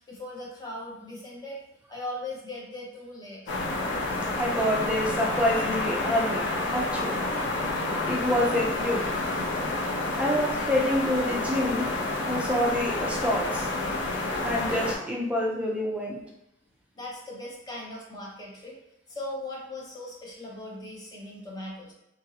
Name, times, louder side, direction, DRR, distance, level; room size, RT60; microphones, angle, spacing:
voice 1, 0.0-1.6 1.9-3.5 16.9-18.7 19.1-21.9, left 1 dB, 20° left, -4 dB, 0.8 m, -39 dB
sound 1, 3.5-15.0, left 2 dB, 80° left, 0.5 m, -29 dB
voice 2, 4.4-7.2 8.1-9.0 10.2-11.9 12.2-13.7 14.4-16.2, equal, 5° right, -3 dB, 0.4 m, -27 dB
2.9 x 2.6 x 2.7 m, 0.85 s
head